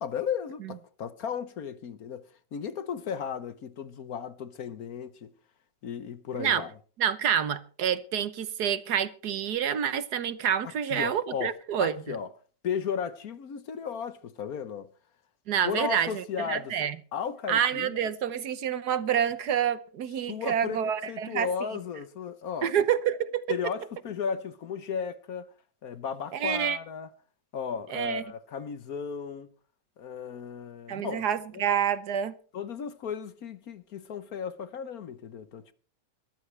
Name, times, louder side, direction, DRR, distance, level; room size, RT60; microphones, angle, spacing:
voice 1, 0.0-5.3 5.8-6.7 10.6-11.5 11.8-12.3 12.6-14.9 15.6-16.8 17.1-17.9 20.3-22.9 23.5-25.5 25.8-27.1 27.5-29.5 30.0-31.3 32.5-35.7, left 7 dB, 60° left, 1.3 m, -35 dB
voice 2, 6.3-6.6 7.0-12.2 15.5-17.0 17.5-21.5 22.6-23.6 26.3-26.8 27.9-28.2 30.9-32.4, right 9 dB, 65° right, 1.4 m, -28 dB
22.5 x 13.5 x 3.3 m
omnidirectional pair, 1.9 m